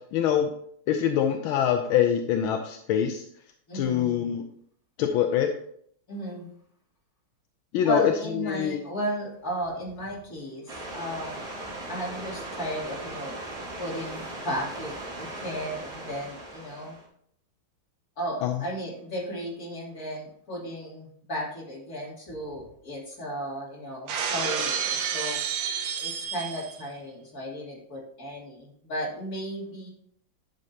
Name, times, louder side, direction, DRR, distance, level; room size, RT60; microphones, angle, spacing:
voice 1, 0.1-0.5 0.9-3.3 3.7-4.4 5.0-5.5 7.7-8.8 18.4-18.5, left 9 dB, 80° left, 4 dB, 1.4 m, -24 dB
voice 2, 3.7-4.3 6.1-6.5 7.8-11.3 11.9-13.4 13.8-17.0 18.2-25.4 26.0-29.9, equal, 45° left, -5 dB, 3.2 m, -35 dB
sound 1, 10.7-17.0, right 1 dB, 45° right, 3.7 m, -38 dB
Shatter, 24.1-26.8, right 7 dB, 70° right, 1.6 m, -30 dB
10.5 x 6.5 x 2.8 m, 0.65 s
omnidirectional pair, 2.2 m